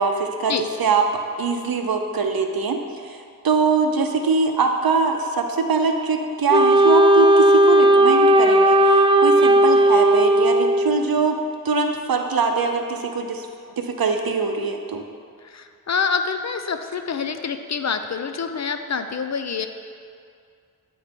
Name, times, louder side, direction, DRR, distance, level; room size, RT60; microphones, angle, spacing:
voice 1, 0.0-0.5 0.8-2.8 3.0-11.4 11.6-13.5 13.8-15.0, right 4 dB, 90° right, 4 dB, 0.6 m, -22 dB
Wind instrument woodwind instrument, 6.5-11.1, right 1 dB, 15° right, 0.3 m, -15 dB
voice 2, 15.4-19.7, left 5 dB, 50° left, 8 dB, 0.4 m, -26 dB
8.9 x 3.1 x 5.1 m, 2.2 s
wide cardioid pair, 60°, 35 cm